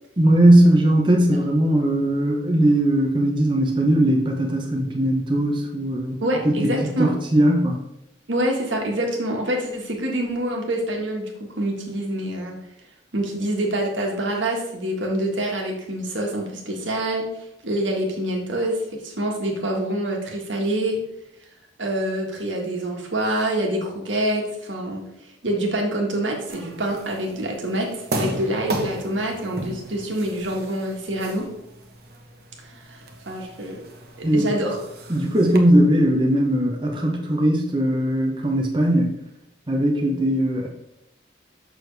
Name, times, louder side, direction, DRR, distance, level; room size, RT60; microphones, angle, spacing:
voice 1, 0.2-6.2 6.4-6.7 7.0-7.8 34.2-34.5 35.1-39.1 39.7-40.7, right 1 dB, 25° right, 0 dB, 0.7 m, -19 dB
voice 2, 6.2-7.1 8.3-12.5 13.1-17.3 17.6-21.0 21.8-25.0 25.4-31.5 33.3-33.8 34.2-34.8, right 1 dB, 80° right, 0 dB, 1.6 m, -26 dB
sound 1, 26.5-35.6, right 1 dB, 55° right, 0.9 m, -35 dB
6.6 x 6.3 x 3.3 m, 0.84 s
head